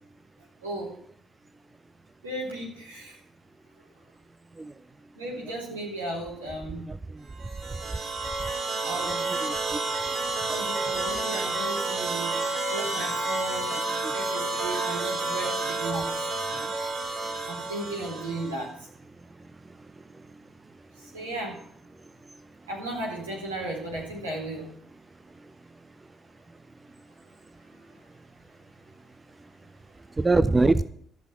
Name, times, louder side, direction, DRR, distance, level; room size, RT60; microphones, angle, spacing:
voice 1, 0.6-1.0 2.2-3.2 5.2-6.8 8.8-9.4 10.5-12.4 12.7-13.7 14.1-16.1 17.4-18.9 21.0-21.6 22.7-24.7 27.9-28.0, right 2 dB, 85° right, -2 dB, 4.1 m, -35 dB
voice 2, 6.9-7.3 9.4-9.8 14.0-14.1 16.5-16.7 30.2-30.8, right 3 dB, 25° right, 15 dB, 0.6 m, -24 dB
sound 1, 7.4-18.6, right 2 dB, 55° right, 2.6 m, -30 dB
14.5 x 6.2 x 8.7 m, 0.67 s
figure-of-eight pair, 45°, 0 cm